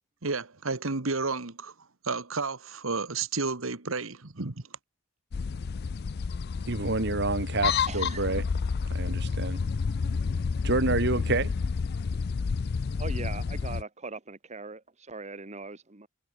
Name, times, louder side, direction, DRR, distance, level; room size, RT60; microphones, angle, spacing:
voice 1, 0.2-1.7 2.0-4.6, right 4 dB, 80° right, 1.7 m, -31 dB
sound 1, 5.3-13.8, left 5 dB, 50° left, 0.4 m, -30 dB
voice 2, 6.7-8.5 8.8-9.6 10.6-11.5, right 3 dB, 55° right, 1.9 m, -28 dB
voice 3, 7.9-8.4 13.0-16.1, right 3 dB, 35° right, 1.6 m, -40 dB
head